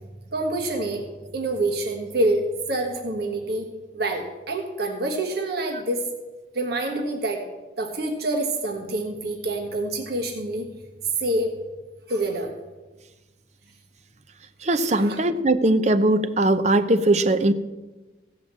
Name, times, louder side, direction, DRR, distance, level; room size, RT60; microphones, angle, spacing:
voice 1, 0.3-1.0 1.3-3.7 3.9-6.0 6.5-7.4 7.8-10.7 11.2-11.5 12.1-12.5 14.9-15.2, right 2 dB, 55° right, 1 dB, 1.6 m, -26 dB
voice 2, 14.6-17.5, right 1 dB, 35° right, 10 dB, 0.7 m, -20 dB
16.0 x 5.7 x 7.5 m, 1.2 s
head